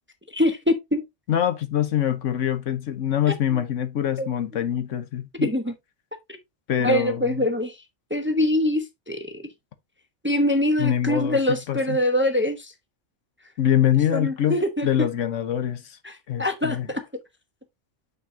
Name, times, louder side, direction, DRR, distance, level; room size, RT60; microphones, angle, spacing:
voice 1, 0.3-1.0 4.2-4.3 5.4-5.7 6.8-7.7 8.1-9.4 10.2-12.7 14.1-15.1 16.0-17.0, left 1 dB, 10° right, 0.7 m, -24 dB
voice 2, 1.3-5.5 6.7-7.5 10.8-12.0 13.6-14.6 14.8-15.8 16.3-16.9, left 10 dB, 80° left, 1.2 m, -24 dB
6.8 x 6.0 x 2.6 m
omnidirectional pair, 1.3 m